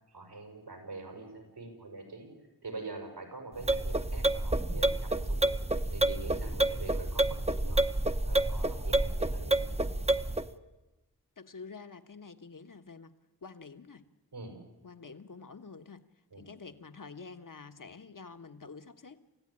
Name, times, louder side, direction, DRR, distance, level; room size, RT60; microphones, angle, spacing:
voice 1, 0.1-2.3 2.6-5.6 5.9-7.9 8.3-9.7 14.3-14.6 16.3-16.5, right 3 dB, 90° right, 4 dB, 6.0 m, -44 dB
sound 1, 3.6-10.5, right 2 dB, 15° right, 0.9 m, -29 dB
voice 2, 11.4-13.1 13.4-14.0 14.8-16.0 16.4-19.2, left 4 dB, 55° left, 9 dB, 1.4 m, -48 dB
28.5 x 15.0 x 10.0 m, 1.1 s
wide cardioid pair, 50°, 38 cm